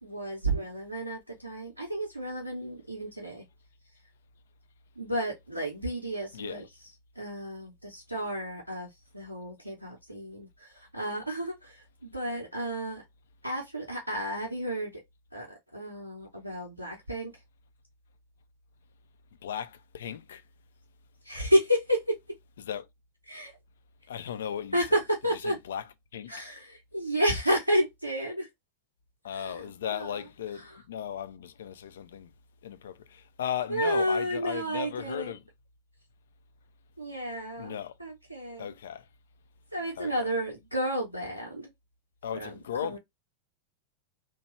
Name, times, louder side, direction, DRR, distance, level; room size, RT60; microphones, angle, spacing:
voice 1, 0.0-3.4 5.0-6.6 7.2-8.9 9.1-13.0 13.4-15.0 15.3-17.3 21.2-22.2 23.3-23.5 24.7-25.6 26.3-28.5 29.3-30.2 30.6-30.8 33.7-35.3 37.0-38.7 39.7-41.7 42.3-42.5 42.8-43.0, equal, 85° right, 0.7 m, -31 dB
voice 2, 6.3-6.7 19.4-20.4 22.6-22.9 24.1-24.8 25.4-25.8 26.1-26.3 29.2-32.3 32.6-35.4 37.6-37.9 38.6-39.1 40.0-40.3 42.2-43.0, left 9 dB, 60° left, 0.4 m, -36 dB
2.9 x 2.2 x 3.0 m
figure-of-eight pair, 90°, 0 cm